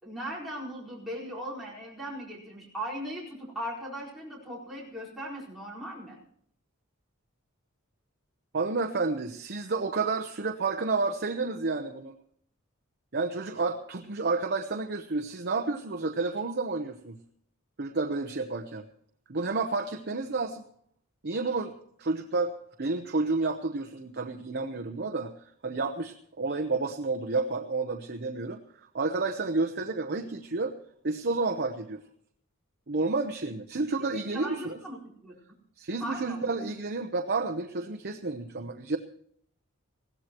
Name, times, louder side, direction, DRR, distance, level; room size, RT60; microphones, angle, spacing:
voice 1, 0.0-6.2 34.1-35.4 36.0-36.4, equal, ahead, -7 dB, 4.5 m, -38 dB
voice 2, 8.5-12.1 13.1-17.2 17.8-18.8 19.3-20.6 21.2-21.7 22.0-30.7 31.0-32.0 32.9-34.8 35.8-39.0, right 3 dB, 50° right, 6 dB, 0.9 m, -30 dB
20.5 x 16.0 x 3.0 m, 0.66 s
head